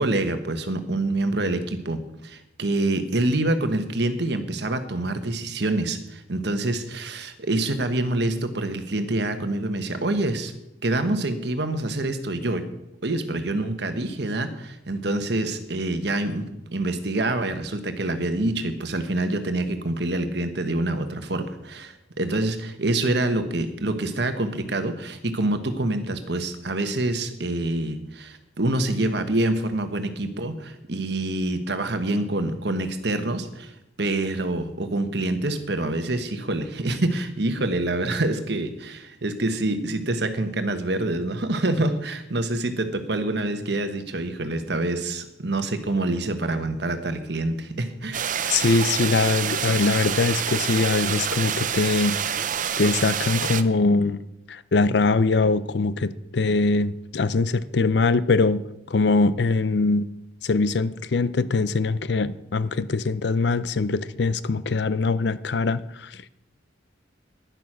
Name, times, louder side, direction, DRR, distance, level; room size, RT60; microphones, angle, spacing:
voice 1, 0.0-10.5 10.8-12.7 13.0-33.7 34.0-48.3, right 2 dB, 60° right, 9 dB, 1.3 m, -26 dB
sound 1, 48.1-53.6, right 8 dB, 45° right, 0.6 m, -27 dB
voice 2, 48.5-52.4 52.8-58.6 58.9-60.1 60.4-66.3, left 3 dB, 60° left, 16 dB, 0.6 m, -22 dB
11.0 x 10.5 x 6.1 m, 0.86 s
head